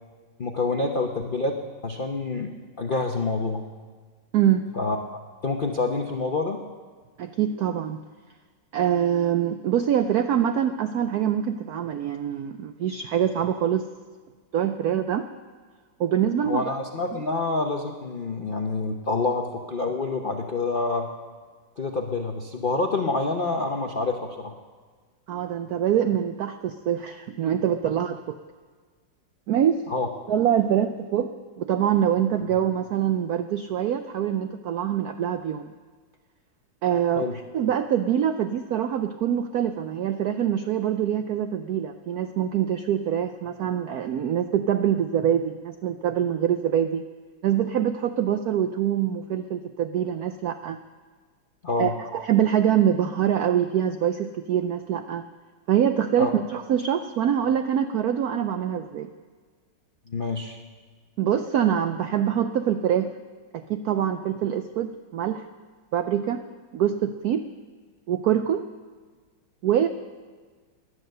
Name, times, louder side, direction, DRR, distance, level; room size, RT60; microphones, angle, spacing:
voice 1, 0.4-1.6 1.8-2.5 2.8-3.6 4.7-5.0 5.4-6.6 16.4-21.1 21.8-24.5 29.9-30.1 37.1-37.3 51.6-51.9 56.2-56.3 60.1-60.6, left 3 dB, 55° left, 2 dB, 0.5 m, -27 dB
voice 2, 4.3-4.7 7.2-8.0 8.7-13.9 14.5-15.3 16.0-16.6 25.3-28.4 29.5-29.8 30.3-31.3 31.6-35.7 36.8-37.3 37.5-47.0 47.4-50.8 51.8-55.3 55.7-59.1 61.2-63.1 63.5-65.4 65.9-66.4 66.7-67.5 68.1-68.6 69.6-69.9, right 9 dB, 80° right, 9 dB, 0.8 m, -24 dB
17.0 x 11.0 x 6.6 m, 1.5 s
omnidirectional pair, 2.2 m